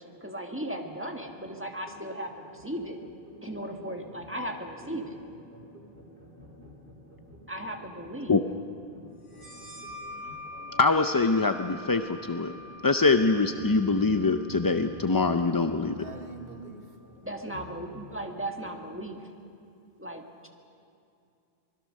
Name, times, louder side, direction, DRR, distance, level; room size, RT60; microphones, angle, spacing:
voice 1, 0.0-3.0 3.4-5.2 7.5-8.4 17.2-19.3 20.0-20.5, right 1 dB, 10° right, 2 dB, 1.7 m, -37 dB
sound 1, 1.2-18.7, right 1 dB, 85° right, 3.5 m, -49 dB
sound 2, 9.3-16.6, left 2 dB, 60° left, 5.5 m, -46 dB
voice 2, 10.8-12.5 12.8-16.0, left 3 dB, 30° left, 7 dB, 0.4 m, -24 dB
voice 3, 15.8-16.8, right 4 dB, 65° right, 5 dB, 1.4 m, -44 dB
25.0 x 20.5 x 6.5 m, 2.5 s
omnidirectional pair, 1.0 m